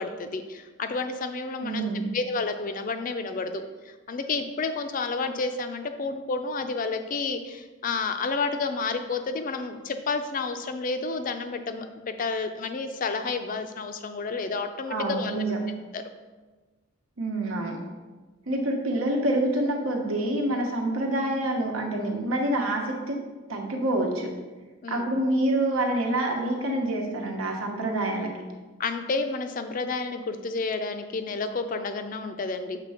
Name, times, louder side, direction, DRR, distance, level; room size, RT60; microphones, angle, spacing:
voice 1, 0.0-1.9 2.1-15.4 15.9-16.0 24.8-25.1 28.8-32.8, left 4 dB, 40° left, 8 dB, 0.4 m, -30 dB
voice 2, 1.6-2.1 14.9-15.6 17.2-17.8 18.5-23.2 23.5-24.3 24.9-28.3, right 1 dB, 90° right, 1 dB, 1.1 m, -27 dB
6.7 x 3.3 x 4.9 m, 1.3 s
head